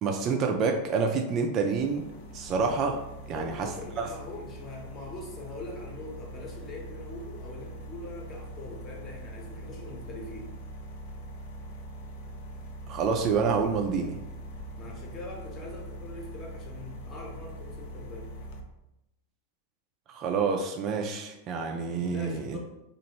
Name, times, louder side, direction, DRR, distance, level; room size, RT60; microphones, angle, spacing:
voice 1, 0.0-2.1 2.3-3.0 3.3-3.7 4.0-4.1 12.9-14.2 20.1-22.6, right 5 dB, 35° right, 3 dB, 0.3 m, -28 dB
sound 1, 1.7-18.6, right 1 dB, 50° left, 0.4 m, -42 dB
voice 2, 3.3-10.5 14.8-18.3 22.1-22.6, left 2 dB, 25° left, -1 dB, 0.8 m, -42 dB
2.9 x 2.4 x 2.9 m, 0.90 s
figure-of-eight pair, 90°, 0 cm